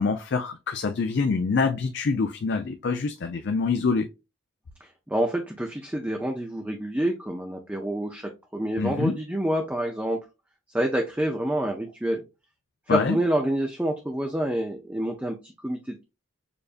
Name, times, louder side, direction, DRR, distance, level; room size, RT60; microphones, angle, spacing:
voice 1, 0.0-4.1 8.8-9.2 12.9-13.2, left 4 dB, 55° left, 0.4 m, -25 dB
voice 2, 4.8-10.2 10.7-12.2 12.9-16.0, right 1 dB, 5° right, 0.5 m, -28 dB
6.8 x 2.5 x 2.5 m
head